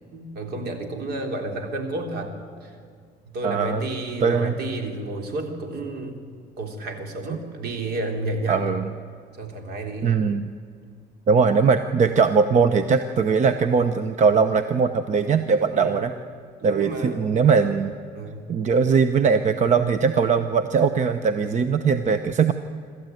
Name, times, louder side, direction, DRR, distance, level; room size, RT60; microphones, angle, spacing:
voice 1, 0.1-2.3 2.6-2.7 3.3-6.2 6.6-8.6 9.4-10.1 15.7-16.0 16.6-17.3 18.1-18.4, right 2 dB, 70° right, 4 dB, 3.6 m, -31 dB
voice 2, 3.4-3.8 4.2-4.6 8.5-8.9 10.0-10.5 11.3-16.1 16.6-17.9 18.5-22.5, right 5 dB, 45° right, 10 dB, 0.9 m, -20 dB
26.0 x 13.5 x 9.3 m, 2.1 s
cardioid pair, 110°, 17 cm